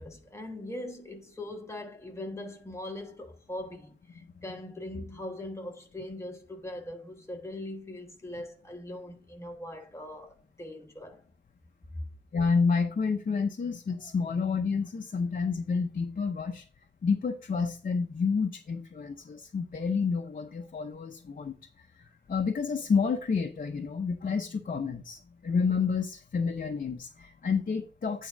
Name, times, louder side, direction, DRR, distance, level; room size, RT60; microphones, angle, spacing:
voice 1, 0.0-11.2 11.9-12.1, left 1 dB, 15° left, 1.2 m, -41 dB
voice 2, 12.3-16.6 17.0-21.6 22.0-28.3, left 5 dB, 45° left, 0.7 m, -29 dB
9.0 x 3.6 x 5.1 m
wide cardioid pair, 160°, 19 cm